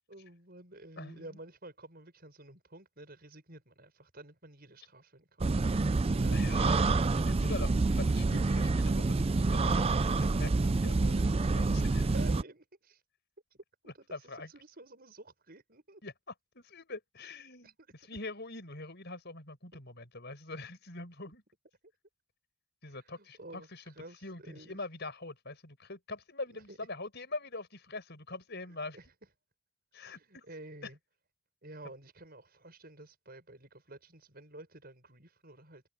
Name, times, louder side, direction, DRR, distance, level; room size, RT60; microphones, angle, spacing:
voice 1, 0.1-7.5 12.0-13.0 13.9-14.2 14.5-16.0 17.6-17.7 23.1-24.8 26.5-26.9 28.7-29.1 30.0-31.0 31.6-35.8, right 2 dB, 40° right, 7.1 m, -51 dB
sound 1, 5.4-12.4, right 3 dB, 25° right, 0.4 m, -27 dB
voice 2, 6.3-7.0 7.3-12.1 13.8-14.5 16.0-16.1 16.5-17.7 18.0-21.4 22.8-23.9 24.2-29.0 29.9-30.5 30.8-30.9, left 2 dB, 50° left, 5.8 m, -44 dB
head